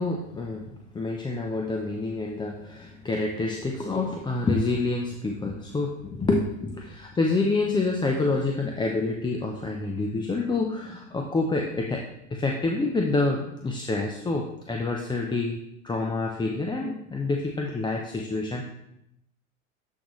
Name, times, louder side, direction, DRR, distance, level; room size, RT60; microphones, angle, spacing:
voice 1, 0.0-12.0 12.3-18.6, left 3 dB, 10° left, 1 dB, 0.5 m, -27 dB
10.0 x 4.0 x 3.0 m, 0.81 s
hypercardioid pair, 90°, 41 cm